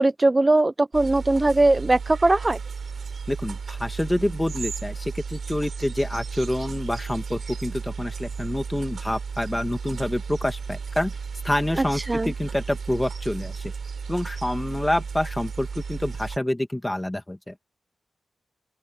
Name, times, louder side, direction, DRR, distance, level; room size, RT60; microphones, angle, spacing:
voice 1, 0.0-2.6 11.8-12.3, right 2 dB, 20° right, 0.3 m, -20 dB
sound 1, 0.9-16.4, right 5 dB, 55° right, 7.1 m, -34 dB
voice 2, 3.3-11.1 11.4-13.7 14.1-17.5, left 1 dB, 10° left, 1.7 m, -27 dB
open air
wide cardioid pair, 140°, 0 cm